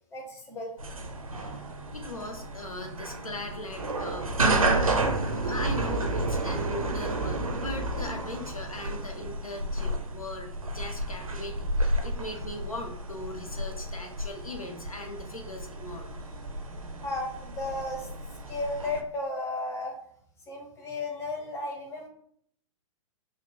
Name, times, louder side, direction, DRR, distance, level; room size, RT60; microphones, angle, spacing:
voice 1, 0.1-0.7 17.0-18.1 18.5-19.9 20.5-22.1, left 2 dB, 15° left, 0 dB, 0.9 m, -34 dB
sound 1, 0.8-19.0, right 2 dB, 90° right, 0.6 m, -31 dB
voice 2, 1.9-16.1, left 1 dB, 90° left, 3 dB, 0.8 m, -39 dB
3.8 x 2.0 x 3.6 m, 0.63 s
figure-of-eight pair, 110°, 17 cm